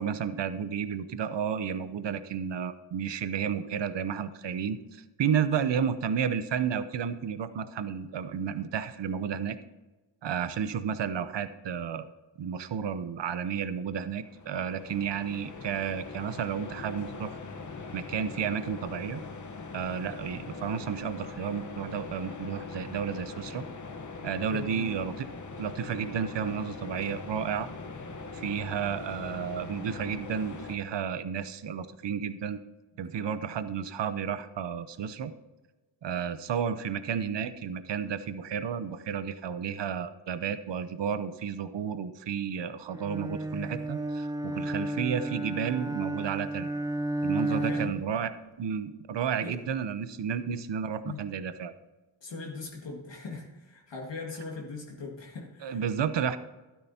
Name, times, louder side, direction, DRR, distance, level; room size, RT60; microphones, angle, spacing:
voice 1, 0.0-9.6 10.2-12.1 12.4-17.4 17.9-19.2 19.7-23.6 24.2-25.3 25.6-27.7 28.3-32.6 33.0-35.3 36.0-46.7 47.2-48.3 48.6-51.7 55.6-56.4, right 7 dB, 60° right, 12 dB, 0.8 m, -32 dB
sound 1, 14.1-30.8, left 4 dB, 40° left, 1.1 m, -42 dB
voice 2, 24.5-25.0 32.9-33.1 47.5-47.9 49.4-49.6 51.0-51.3 52.2-55.8, left 3 dB, 65° left, -1 dB, 2.0 m, -40 dB
Bowed string instrument, 42.9-48.2, right 2 dB, 10° right, 0.3 m, -32 dB
12.0 x 10.5 x 2.8 m, 1.1 s
cardioid pair, 50°, 48 cm